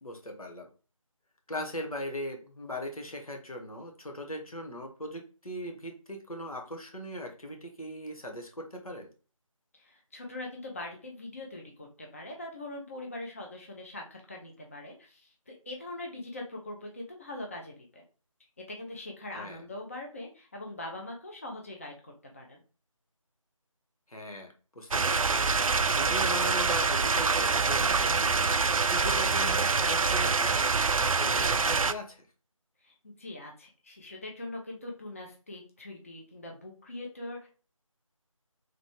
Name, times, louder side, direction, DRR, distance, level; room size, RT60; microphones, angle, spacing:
voice 1, 0.0-0.7 1.5-9.1 19.3-19.6 24.1-30.6 31.0-32.2, equal, 85° left, 3 dB, 1.3 m, -39 dB
voice 2, 9.7-18.0 18.6-22.6 32.8-37.5, left 2 dB, 25° left, 0 dB, 0.6 m, -42 dB
sound 1, 24.9-31.9, right 4 dB, 75° right, 0.4 m, -25 dB
4.1 x 3.2 x 3.1 m, 0.36 s
figure-of-eight pair, 165°, 18 cm